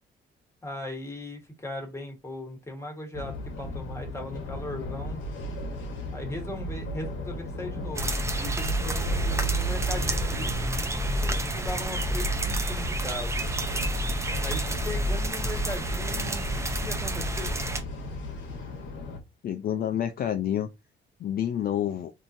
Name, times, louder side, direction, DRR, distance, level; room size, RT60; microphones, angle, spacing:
voice 1, 0.6-5.2 6.1-10.6 11.2-13.4 14.3-16.5 16.8-17.6, left 1 dB, 15° left, 1.3 m, -38 dB
sound 1, 3.1-19.2, left 1 dB, 70° left, 1.0 m, -36 dB
sound 2, 7.9-17.8, right 1 dB, 15° right, 0.5 m, -29 dB
voice 2, 19.4-20.7 21.2-22.1, left 10 dB, 50° left, 0.4 m, -28 dB
3.6 x 2.7 x 2.5 m
cardioid pair, 90°, 20 cm